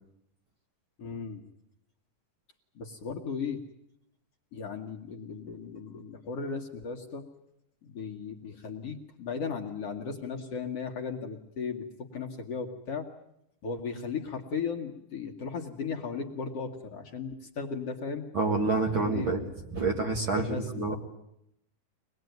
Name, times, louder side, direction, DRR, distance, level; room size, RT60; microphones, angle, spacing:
voice 1, 1.0-1.4 2.8-3.6 4.5-7.2 7.8-11.8 12.1-13.1 13.6-18.3 19.0-19.3 20.3-21.0, left 5 dB, 55° left, 2 dB, 2.1 m, -36 dB
voice 2, 18.3-19.4 19.7-21.0, right 3 dB, 45° right, 2 dB, 2.1 m, -27 dB
24.5 x 20.0 x 9.3 m, 0.80 s
omnidirectional pair, 3.8 m